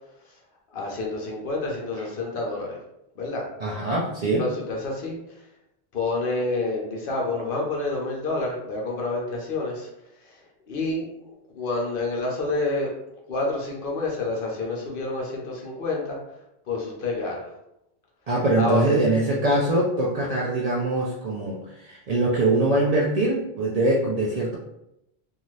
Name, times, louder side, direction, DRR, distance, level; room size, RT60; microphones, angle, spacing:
voice 1, 0.7-2.8 3.2-3.4 4.4-5.2 5.9-9.9 10.2-10.4 10.7-11.1 11.5-12.9 13.3-16.2 16.7-17.5 18.6-18.9, left 2 dB, 60° left, -1 dB, 0.8 m, -28 dB
voice 2, 3.6-4.4 18.3-24.6, right 2 dB, 55° right, -4 dB, 0.4 m, -23 dB
2.6 x 2.4 x 3.1 m, 0.83 s
omnidirectional pair, 1.1 m